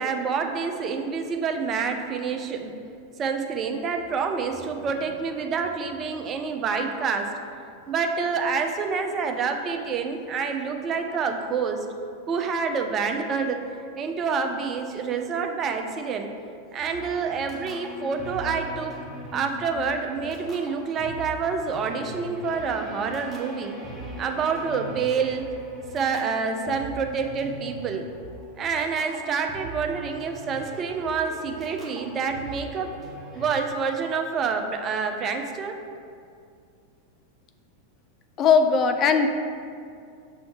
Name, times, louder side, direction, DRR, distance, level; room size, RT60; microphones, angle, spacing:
voice 1, 0.0-2.7 3.2-7.3 7.9-11.9 12.3-13.6 14.0-16.3 16.7-18.9 19.3-23.8 24.2-25.5 25.9-28.1 28.6-32.9 33.3-35.8, right 5 dB, 30° right, 5 dB, 0.5 m, -27 dB
sound 1, 16.8-33.6, equal, 5° right, 1.0 m, -40 dB
voice 2, 38.4-39.3, left 5 dB, 30° left, 7 dB, 0.4 m, -19 dB
6.4 x 3.1 x 4.7 m, 2.3 s
figure-of-eight pair, 90°, 0 cm